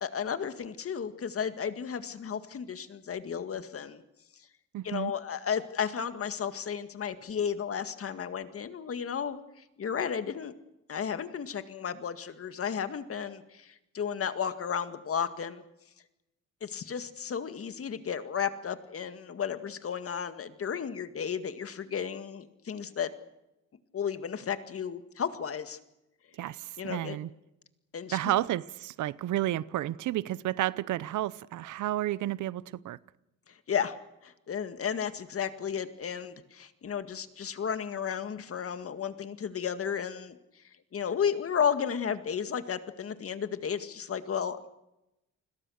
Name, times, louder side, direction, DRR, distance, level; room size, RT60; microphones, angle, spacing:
voice 1, 0.0-4.0 4.8-9.4 9.8-10.5 10.9-15.6 16.6-23.1 23.9-25.8 26.8-27.2 27.9-28.2 33.7-34.0 34.2-40.4 40.9-44.7, left 7 dB, 50° left, 2.0 m, -33 dB
voice 2, 4.7-5.1 26.4-27.3 28.1-33.0, right 14 dB, 75° right, 0.8 m, -31 dB
29.0 x 21.0 x 6.5 m
cardioid pair, 90°, 30 cm